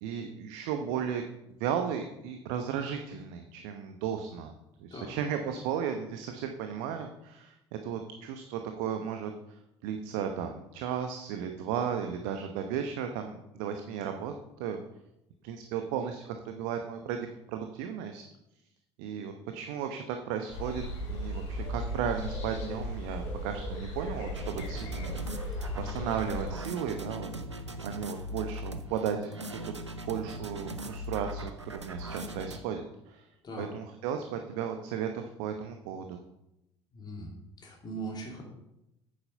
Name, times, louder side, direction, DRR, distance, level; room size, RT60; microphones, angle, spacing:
voice 1, 0.0-1.2 1.6-4.5 4.8-9.6 9.8-14.8 15.4-18.2 19.0-20.8 21.1-29.3 29.6-29.8 30.1-33.3 33.6-36.2, right 8 dB, 55° right, 6 dB, 0.9 m, -35 dB
sound 1, 20.5-26.5, equal, 55° left, 4.7 m, -36 dB
sound 2, 24.3-32.6, equal, 85° right, 0.7 m, -39 dB
voice 2, 36.9-38.4, right 2 dB, 30° left, 0 dB, 3.0 m, -40 dB
9.2 x 8.7 x 5.6 m, 0.86 s
figure-of-eight pair, 65°, 14 cm